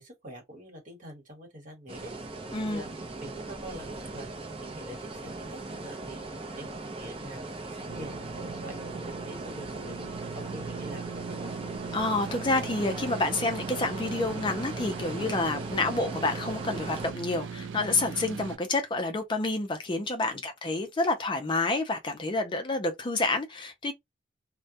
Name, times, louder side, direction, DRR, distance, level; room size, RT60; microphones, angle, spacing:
voice 1, 0.0-2.9 3.2-6.2 6.5-11.5 20.3-20.4, right 1 dB, 45° right, 1.2 m, -45 dB
sound 1, 1.9-17.1, right 2 dB, 30° right, 0.5 m, -39 dB
sound 2, 7.9-18.6, right 5 dB, 80° right, 0.4 m, -39 dB
voice 2, 11.9-23.9, left 2 dB, 25° left, 0.4 m, -29 dB
2.2 x 2.1 x 2.7 m
head